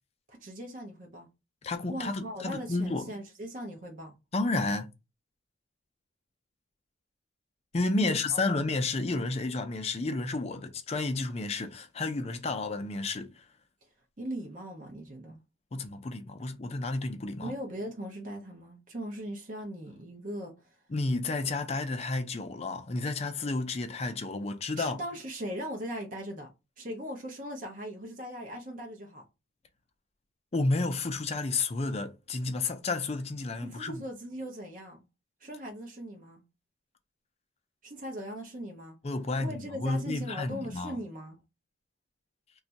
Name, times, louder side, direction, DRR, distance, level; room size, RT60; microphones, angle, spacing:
voice 1, 0.3-1.3 1.9-4.1 8.0-8.4 14.2-15.4 17.4-20.7 24.8-26.5 26.8-29.2 33.6-35.0 35.4-36.4 37.8-39.0 39.4-41.4, equal, 45° right, 0.7 m, -39 dB
voice 2, 1.6-3.1 4.3-4.9 7.7-13.4 15.7-17.5 20.9-25.0 30.5-34.0 39.0-41.0, left 3 dB, 35° left, 0.4 m, -31 dB
2.6 x 2.3 x 3.9 m
head